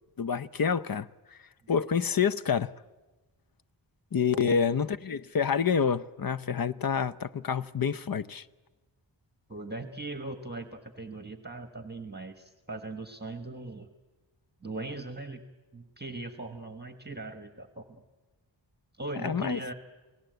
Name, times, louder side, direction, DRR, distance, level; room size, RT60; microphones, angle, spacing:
voice 1, 0.2-1.1 1.7-2.7 4.1-8.4 19.2-19.6, left 6 dB, 50° left, 0.7 m, -27 dB
voice 2, 4.3-4.8 9.5-13.9 14.6-15.4 15.7-18.0 18.9-19.7, right 2 dB, 20° right, 1.4 m, -39 dB
29.0 x 18.5 x 8.0 m
wide cardioid pair, 105°, 46 cm